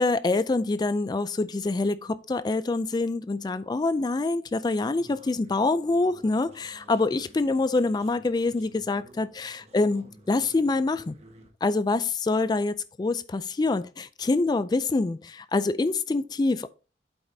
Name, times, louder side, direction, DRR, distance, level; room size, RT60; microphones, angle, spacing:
voice 1, 0.0-11.1 11.6-16.7, left 3 dB, 25° left, 0.3 m, -26 dB
sound 1, 4.9-11.5, right 1 dB, 40° right, 1.4 m, -53 dB
8.8 x 7.8 x 2.7 m
head